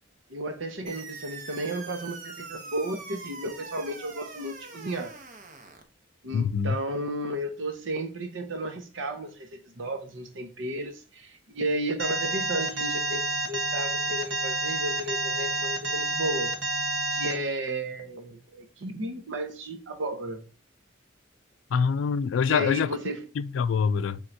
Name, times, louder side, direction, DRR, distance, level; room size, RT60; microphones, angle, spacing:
voice 1, 0.3-5.1 6.2-16.6 17.1-20.5 22.4-23.3, right 1 dB, 80° right, 0.8 m, -33 dB
sound 1, 0.9-5.9, right 4 dB, 40° right, 0.8 m, -43 dB
voice 2, 6.3-6.8 21.7-23.0 23.4-24.2, left 6 dB, 80° left, 0.3 m, -25 dB
Alarm, 12.0-17.3, right 2 dB, 65° right, 1.2 m, -29 dB
4.5 x 3.6 x 2.6 m
head